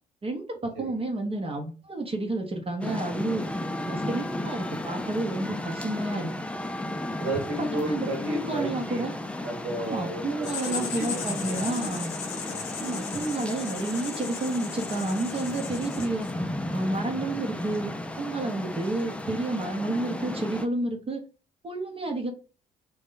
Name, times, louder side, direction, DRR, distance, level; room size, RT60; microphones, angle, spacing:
voice 1, 0.2-3.4 3.9-6.3 7.6-9.1 9.8-12.1 12.8-16.3 16.7-21.2 21.6-22.3, right 2 dB, 30° right, 3 dB, 0.8 m, -30 dB
sound 1, 2.8-20.7, left 1 dB, 5° left, 0.4 m, -34 dB
voice 2, 7.2-9.1 9.4-11.7 12.4-12.9, right 1 dB, 60° right, 2 dB, 1.3 m, -34 dB
Writing, 10.4-16.4, left 6 dB, 65° left, 0.8 m, -37 dB
2.9 x 2.6 x 3.8 m, 0.36 s
figure-of-eight pair, 45°, 20 cm